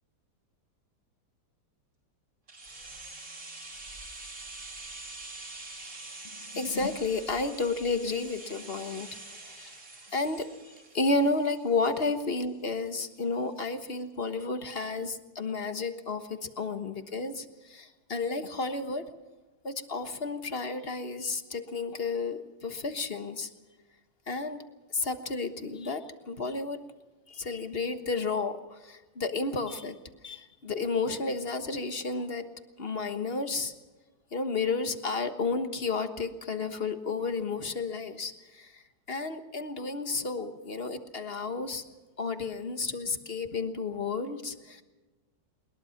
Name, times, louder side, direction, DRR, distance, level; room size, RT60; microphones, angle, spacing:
sound 1, 2.5-12.3 12.6-12.7, right 2 dB, 45° right, 3.6 m, -45 dB
voice 1, 6.4-9.8 10.1-19.1 19.6-23.5 24.3-24.6 24.9-26.8 27.3-30.0 30.2-32.5 32.8-33.7 34.3-41.8 42.2-44.8, left 3 dB, 35° left, 8 dB, 1.4 m, -32 dB
22.0 x 21.5 x 5.9 m, 1.2 s
omnidirectional pair, 2.0 m